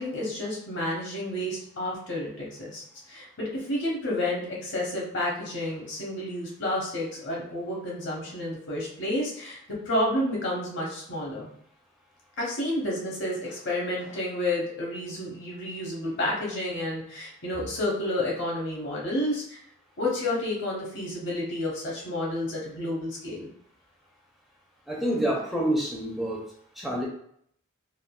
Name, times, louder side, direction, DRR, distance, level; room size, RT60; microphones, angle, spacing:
voice 1, 0.0-2.8 3.1-9.6 9.9-11.5 12.4-19.6 20.0-23.5, left 1 dB, 55° left, -3 dB, 1.0 m, -30 dB
voice 2, 24.9-26.4 26.8-27.1, right 1 dB, ahead, -4 dB, 0.5 m, -27 dB
3.6 x 2.3 x 2.3 m, 0.67 s
head